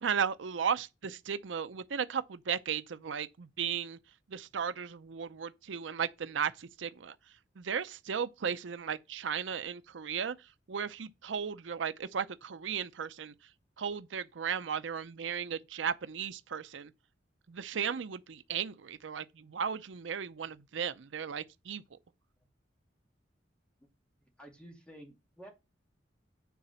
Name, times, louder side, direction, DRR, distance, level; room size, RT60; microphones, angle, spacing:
voice 1, 0.0-4.0 4.3-7.2 7.6-10.3 10.7-13.3 13.8-16.9 17.5-21.8, right 7 dB, 90° right, 0.5 m, -35 dB
voice 2, 24.4-25.5, right 1 dB, 5° left, 2.4 m, -51 dB
9.4 x 4.1 x 5.7 m
head